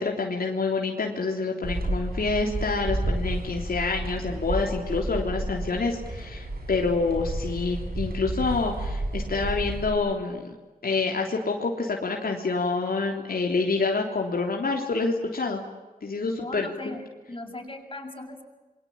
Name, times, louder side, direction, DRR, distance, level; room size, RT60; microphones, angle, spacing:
voice 1, 0.0-10.6 10.8-15.6 16.0-16.9, left 4 dB, 75° left, 1 dB, 3.4 m, -27 dB
sound 1, 1.6-9.9, right 1 dB, 85° right, 7.6 m, -31 dB
voice 2, 16.2-17.0 17.3-18.4, left 2 dB, 35° left, 2 dB, 7.0 m, -38 dB
28.5 x 23.5 x 8.7 m, 1.2 s
wide cardioid pair, 90°, 15 cm